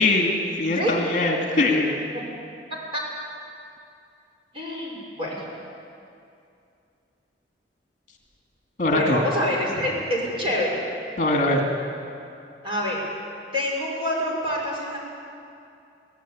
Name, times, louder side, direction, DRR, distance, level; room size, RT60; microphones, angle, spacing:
voice 1, 0.0-1.9 8.8-9.2 11.2-11.6, left 2 dB, 45° left, 1 dB, 2.7 m, -21 dB
voice 2, 4.5-5.5 8.9-10.8 12.6-13.0 13.5-15.0, left 1 dB, 30° right, -3 dB, 6.1 m, -26 dB
24.0 x 16.5 x 9.0 m, 2.5 s
head